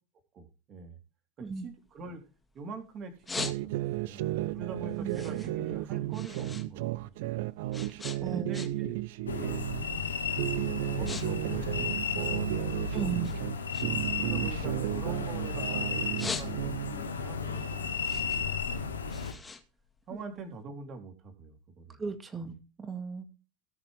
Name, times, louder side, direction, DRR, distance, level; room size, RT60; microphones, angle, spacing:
voice 1, 0.3-1.0 1.4-2.2 2.5-3.7 4.0-4.3 4.5-7.4 8.3-9.6 10.9-13.4 14.2-19.3 20.1-22.0 22.4-22.5, right 3 dB, 35° right, 4 dB, 3.8 m, -45 dB
sound 1, 1.5-2.6 3.0-4.1 4.5-6.7 7.0-9.0 9.3-9.6 10.2-10.4 10.7-11.3 11.5-12.8 13.2-15.5 15.9-17.0 17.4-20.5, left 4 dB, 15° left, 2.0 m, -41 dB
sound 2, 3.4-9.8 10.3-13.6 13.8-17.0, right 16 dB, 60° right, 0.7 m, -34 dB
voice 2, 8.2-8.6 12.9-13.3 22.0-23.3, right 5 dB, 20° right, 8 dB, 2.2 m, -36 dB
sound 3, 9.3-19.3, left 4 dB, 80° left, 2.0 m, -34 dB
19.0 x 6.8 x 3.7 m, 0.33 s
figure-of-eight pair, 80°, 0 cm